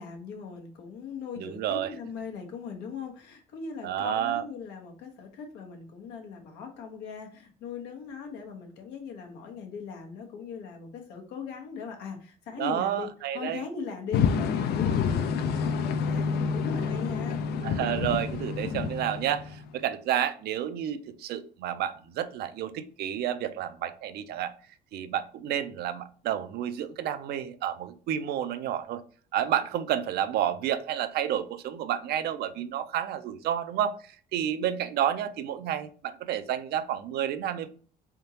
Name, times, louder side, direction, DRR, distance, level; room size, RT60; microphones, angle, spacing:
voice 1, 0.0-13.1 13.3-17.4, left 6 dB, 90° left, 2 dB, 1.1 m, -39 dB
voice 2, 1.4-1.9 3.8-4.4 12.6-13.6 17.6-24.5 24.9-29.0 29.3-37.7, right 10 dB, 70° right, 11 dB, 0.5 m, -30 dB
sound 1, 14.1-19.8, left 6 dB, 70° left, 0.5 m, -28 dB
3.8 x 3.6 x 2.8 m, 0.43 s
cardioid pair, 110°, 17 cm